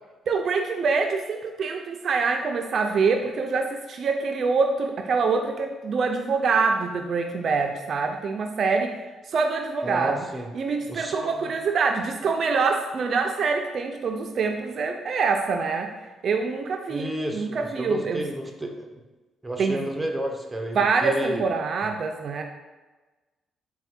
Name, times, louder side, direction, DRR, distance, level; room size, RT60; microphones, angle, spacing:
voice 1, 0.3-10.3 10.5-15.9 16.2-18.2 19.6-19.8 20.7-22.4, right 4 dB, 55° right, 4 dB, 0.3 m, -25 dB
voice 2, 9.8-10.5 10.9-11.5 16.9-18.9 19.4-21.4, right 1 dB, 10° right, 2 dB, 0.6 m, -31 dB
4.2 x 2.1 x 4.2 m, 1.2 s
cardioid pair, 90°, 0 cm